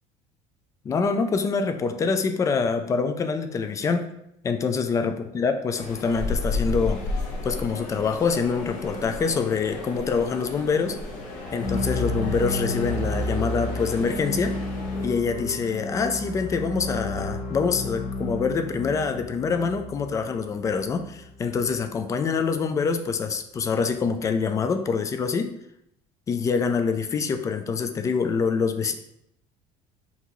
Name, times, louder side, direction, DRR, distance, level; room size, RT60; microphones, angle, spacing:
voice 1, 0.8-4.1 4.4-7.0 7.4-11.0 11.5-14.6 15.0-25.5 26.3-28.9, left 5 dB, 20° left, 7 dB, 0.3 m, -25 dB
sound 1, 5.8-15.1, left 2 dB, 65° left, 1.2 m, -33 dB
sound 2, 11.4-21.5, left 1 dB, 45° left, 0.8 m, -31 dB
5.8 x 2.8 x 3.0 m, 0.79 s
cardioid pair, 155°, 15 cm